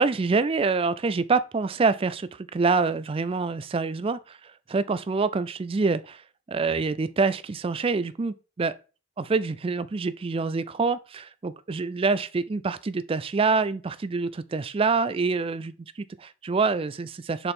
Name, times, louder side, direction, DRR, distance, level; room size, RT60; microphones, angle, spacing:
voice 1, 0.0-6.2 6.5-8.8 9.2-17.5, right 4 dB, 25° right, 0.3 m, -26 dB
6.6 x 4.4 x 3.6 m
head